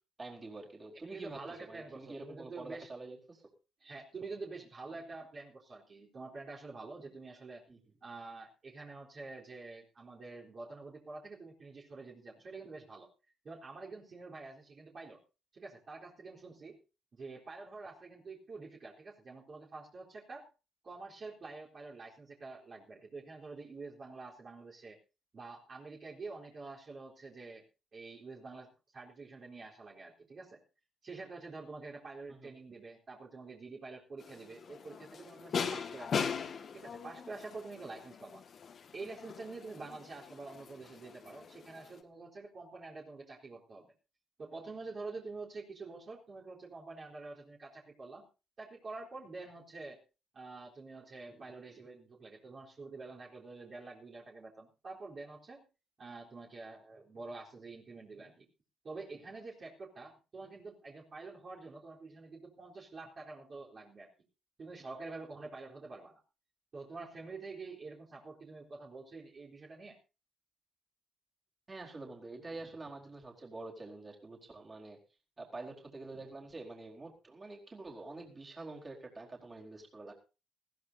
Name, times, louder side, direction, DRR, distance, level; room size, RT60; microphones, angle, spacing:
voice 1, 0.2-3.4 7.7-7.8 32.2-32.5 71.7-75.0 75.4-80.1, right 2 dB, 30° right, 0 dB, 4.3 m, -47 dB
voice 2, 1.0-2.9 3.8-7.7 8.0-13.1 13.4-15.2 15.5-16.8 17.1-20.5 20.8-25.0 25.3-27.6 27.9-30.6 31.0-36.3 36.7-38.4 38.9-43.9 44.4-48.3 48.6-50.0 50.3-55.6 56.0-58.5 58.8-64.1 64.6-66.2 66.7-70.0, right 3 dB, 45° right, -4 dB, 3.9 m, -47 dB
sound 1, 34.2-42.0, left 6 dB, 55° left, 1.9 m, -40 dB
20.0 x 15.5 x 2.8 m, 0.32 s
cardioid pair, 90°, 0 cm